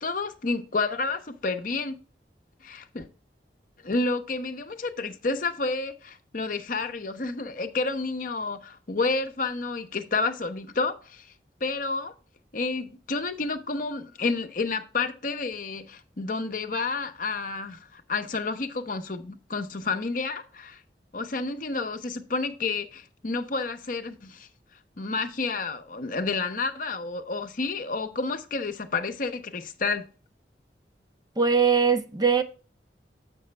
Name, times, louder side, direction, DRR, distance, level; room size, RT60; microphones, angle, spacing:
voice 1, 0.0-2.0 2.6-3.1 3.8-11.3 11.6-12.1 12.5-20.8 21.1-24.5 25.0-30.0, left 3 dB, 50° left, 0.7 m, -30 dB
voice 2, 31.4-32.4, right 6 dB, 25° right, 0.5 m, -21 dB
7.7 x 6.0 x 3.3 m
head